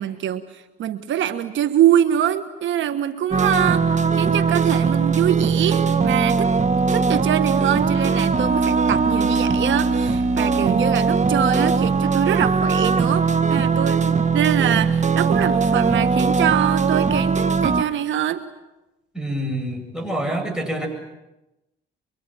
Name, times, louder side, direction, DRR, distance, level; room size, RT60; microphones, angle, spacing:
voice 1, 0.0-6.5 6.9-18.4, right 10 dB, 75° right, 10 dB, 1.4 m, -24 dB
sound 1, 3.3-17.8, right 5 dB, 35° right, 1.6 m, -20 dB
voice 2, 19.1-20.9, right 1 dB, 5° right, 1 dB, 8.0 m, -26 dB
25.0 x 24.5 x 9.2 m, 0.97 s
cardioid pair, 90°, 20 cm